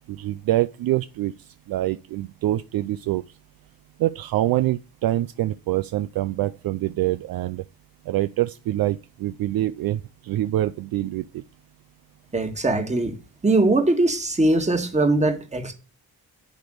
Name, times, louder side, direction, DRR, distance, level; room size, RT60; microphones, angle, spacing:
voice 1, 0.1-1.3 1.7-3.2 4.0-7.6 8.1-11.4, right 14 dB, 60° right, 0.5 m, -25 dB
voice 2, 12.3-13.1 13.4-15.7, right 2 dB, 15° right, 1.7 m, -21 dB
10.5 x 3.5 x 6.4 m
cardioid pair, 95°, 40 cm